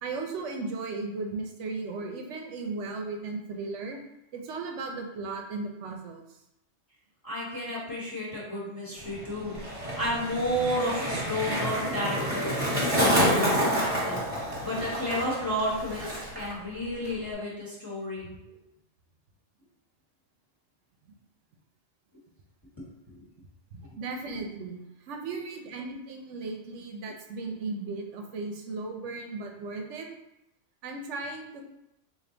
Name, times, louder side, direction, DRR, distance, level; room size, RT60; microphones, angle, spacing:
voice 1, 0.0-4.0 4.3-6.2 10.7-11.0 18.2-18.6 23.7-24.8 25.1-30.1 30.8-31.6, right 3 dB, 70° right, 2 dB, 0.9 m, -36 dB
voice 2, 7.2-12.5 12.9-14.2 14.6-16.1 16.3-18.3 22.8-22.9, equal, 20° left, -8 dB, 1.1 m, -32 dB
Skateboard, 9.0-16.5 16.8-17.3, equal, 25° right, 1.3 m, -28 dB
3.4 x 2.7 x 3.8 m, 0.86 s
omnidirectional pair, 1.3 m